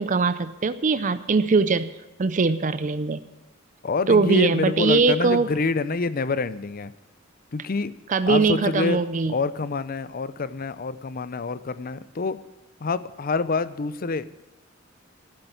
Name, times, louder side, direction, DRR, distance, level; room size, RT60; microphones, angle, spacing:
voice 1, 0.0-1.9 2.2-3.2 4.1-5.5 8.1-9.3, right 4 dB, 40° right, 13 dB, 0.5 m, -21 dB
voice 2, 3.8-6.9 7.5-7.9 8.3-9.0 9.3-12.4 12.8-14.3, left 4 dB, 45° left, 15 dB, 0.6 m, -26 dB
11.5 x 7.9 x 9.1 m, 0.97 s
head